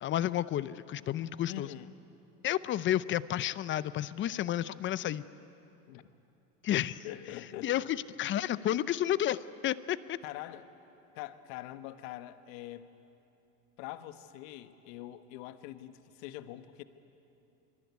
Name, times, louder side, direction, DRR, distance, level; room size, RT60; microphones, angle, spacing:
voice 1, 0.0-1.7 2.4-5.2 6.6-7.0 7.6-7.8 8.2-10.2, left 12 dB, 25° left, 17 dB, 0.6 m, -31 dB
voice 2, 1.5-1.9 5.9-6.1 7.0-7.7 10.2-10.7 11.1-12.9 13.8-16.8, left 14 dB, 55° left, 11 dB, 1.5 m, -44 dB
23.5 x 23.5 x 9.5 m, 2.9 s
hypercardioid pair, 110°, 49 cm